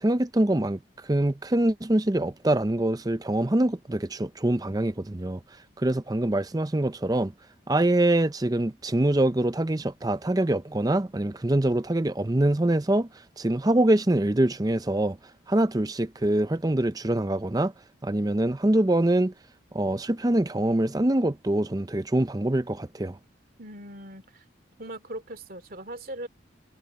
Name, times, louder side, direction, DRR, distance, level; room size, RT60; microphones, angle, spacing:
voice 1, 0.0-0.8 1.1-5.4 5.8-7.3 7.7-13.1 13.4-15.2 15.5-17.7 18.0-19.3 19.7-23.2, right 1 dB, 20° right, 0.6 m, -24 dB
voice 2, 23.6-24.4 24.8-26.3, right 1 dB, 45° right, 2.6 m, -39 dB
head